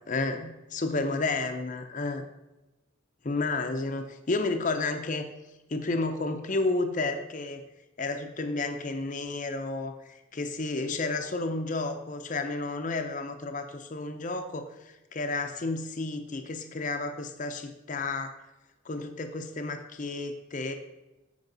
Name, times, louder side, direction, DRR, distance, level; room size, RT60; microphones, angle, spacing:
voice 1, 0.1-2.3 3.2-5.3 5.7-7.6 8.0-14.7 15.1-18.3 18.9-20.7, left 3 dB, 35° left, 6 dB, 0.6 m, -31 dB
8.1 x 4.7 x 5.3 m, 1.0 s
head